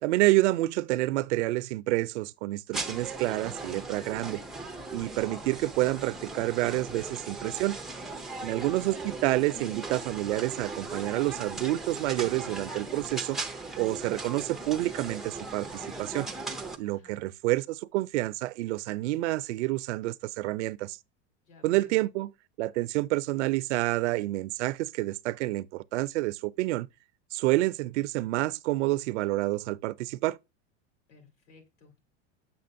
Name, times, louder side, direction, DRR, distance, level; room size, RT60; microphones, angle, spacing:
voice 1, 0.0-4.4 4.9-7.8 8.4-13.4 13.8-16.3 16.8-21.0 21.6-22.3 22.6-26.9 27.3-30.4, right 18 dB, 75° right, 0.5 m, -28 dB
sound 1, 2.7-16.8, right 3 dB, ahead, 0.3 m, -38 dB
voice 2, 8.2-8.5 16.8-17.3 21.5-22.1 31.1-32.0, left 4 dB, 75° left, 3.6 m, -57 dB
7.7 x 5.8 x 2.5 m
supercardioid pair, 135°, 35 cm